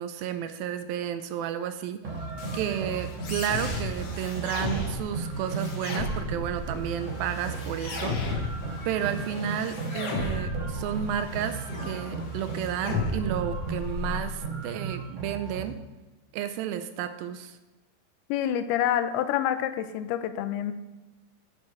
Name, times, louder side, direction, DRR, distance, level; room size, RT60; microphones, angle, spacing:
voice 1, 0.0-2.0 2.5-8.2 8.9-15.8 16.3-17.6, right 9 dB, 80° right, 10 dB, 2.2 m, -32 dB
sound 1, 2.0-15.6, right 4 dB, 50° right, 3.8 m, -36 dB
sound 2, 2.4-14.4, left 3 dB, 65° left, 1.5 m, -35 dB
voice 2, 18.3-20.7, left 10 dB, 85° left, 11 dB, 2.6 m, -27 dB
9.6 x 7.0 x 4.9 m, 1.1 s
omnidirectional pair, 4.6 m